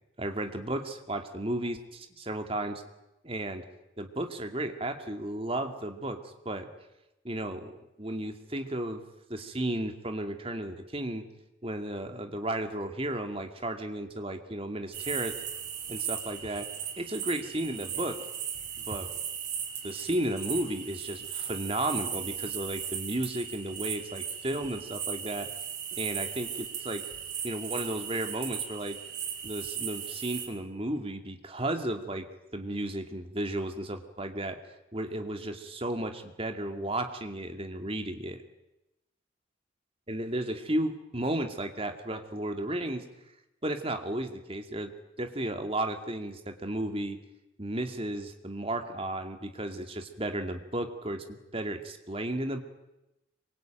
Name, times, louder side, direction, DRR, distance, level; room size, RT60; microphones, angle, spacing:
voice 1, 0.2-2.8 3.2-3.6 4.0-6.7 7.2-9.0 9.3-11.2 11.6-15.3 15.9-16.7 17.0-18.2 18.8-19.2 19.8-25.5 25.9-27.0 27.4-29.0 29.4-32.3 32.5-34.6 34.9-38.4 40.1-43.0 43.6-44.9 45.2-47.2 47.6-52.6, right 1 dB, 30° right, 6 dB, 2.4 m, -34 dB
sound 1, 14.9-30.5, right 8 dB, 55° right, 6.0 m, -37 dB
26.5 x 24.0 x 9.1 m, 0.96 s
head